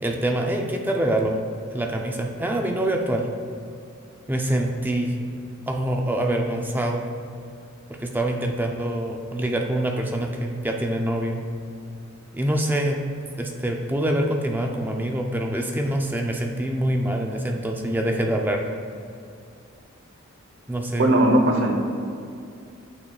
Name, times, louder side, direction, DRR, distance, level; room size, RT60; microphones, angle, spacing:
voice 1, 0.0-1.4 1.7-3.3 4.3-5.1 5.7-7.0 8.0-11.4 12.3-13.0 13.4-18.7 20.7-21.2, right 1 dB, 10° right, 2 dB, 0.5 m, -25 dB
voice 2, 21.0-21.7, right 1 dB, 60° right, 2 dB, 0.9 m, -18 dB
8.7 x 6.4 x 2.4 m, 2.4 s
head